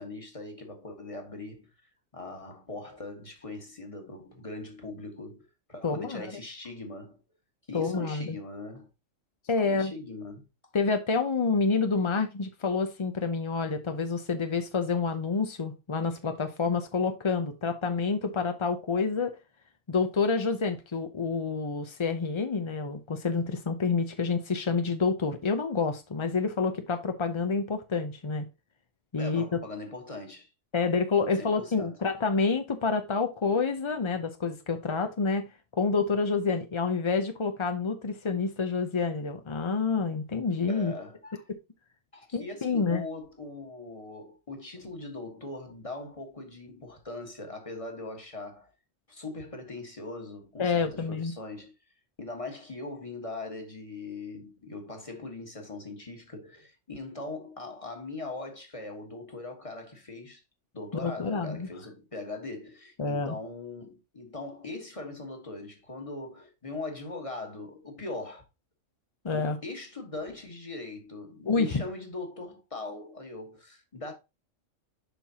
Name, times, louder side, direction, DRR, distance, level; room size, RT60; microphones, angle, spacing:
voice 1, 0.0-1.7 2.1-7.2 7.7-8.9 9.6-10.4 29.1-30.5 31.2-32.0 40.7-41.4 42.1-48.7 49.1-51.7 52.2-60.4 60.7-68.4 69.3-74.1, left 2 dB, 25° left, 1.5 m, -40 dB
voice 2, 5.8-6.3 7.7-8.4 9.5-9.9 10.7-19.4 19.9-28.4 29.1-29.4 30.7-35.5 35.7-40.9 42.3-43.0 50.6-51.3 61.0-61.7 63.0-63.4 69.2-69.6 71.4-71.8, left 4 dB, 45° left, 0.4 m, -28 dB
7.0 x 5.7 x 2.8 m
omnidirectional pair, 1.4 m